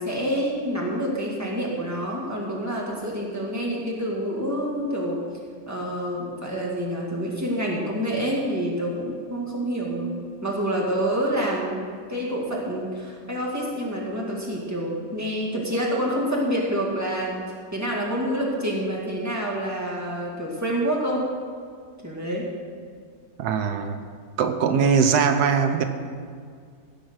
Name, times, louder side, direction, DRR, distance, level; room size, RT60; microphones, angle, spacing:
voice 1, 0.0-5.2 5.7-10.2 10.4-11.8 12.1-17.4 17.7-21.3 22.0-22.5, equal, 10° right, -3 dB, 2.1 m, -27 dB
voice 2, 23.4-24.0 24.4-25.8, right 6 dB, 90° right, 8 dB, 1.3 m, -21 dB
16.0 x 6.0 x 6.3 m, 2.1 s
omnidirectional pair, 1.7 m